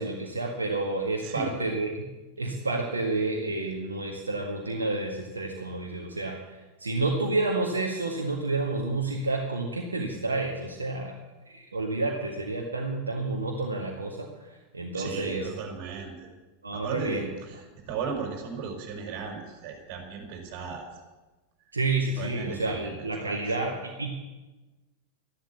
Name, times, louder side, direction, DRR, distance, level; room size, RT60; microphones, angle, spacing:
voice 1, 0.0-1.9 2.4-11.1 11.4-15.5 16.6-17.3 21.7-24.1, right 2 dB, 75° right, 0 dB, 1.8 m, -30 dB
voice 2, 14.9-16.3 16.7-20.9 22.1-23.4, right 5 dB, 45° right, 2 dB, 5.2 m, -36 dB
13.0 x 12.0 x 8.5 m, 1.2 s
figure-of-eight pair, 90°, 0 cm